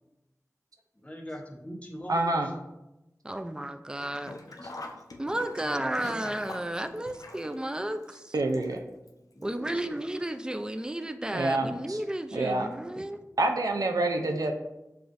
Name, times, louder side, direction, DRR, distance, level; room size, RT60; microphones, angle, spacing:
voice 1, 1.0-2.5 5.3-6.3 9.3-10.0, equal, 20° left, -1 dB, 0.9 m, -42 dB
voice 2, 2.1-2.5 8.3-8.8 11.3-12.0 12.3-12.7 13.4-14.5, right 2 dB, 80° right, 4 dB, 0.4 m, -27 dB
voice 3, 3.2-4.3 5.2-8.3 9.4-13.2, right 1 dB, 15° right, 8 dB, 0.3 m, -33 dB
Sink (filling or washing), 4.1-9.1 9.4-9.5 10.5-10.6 10.9-11.0, left 2 dB, 75° left, 0.4 m, -44 dB
6.8 x 2.5 x 2.5 m, 0.94 s
wide cardioid pair, 50°, 6 cm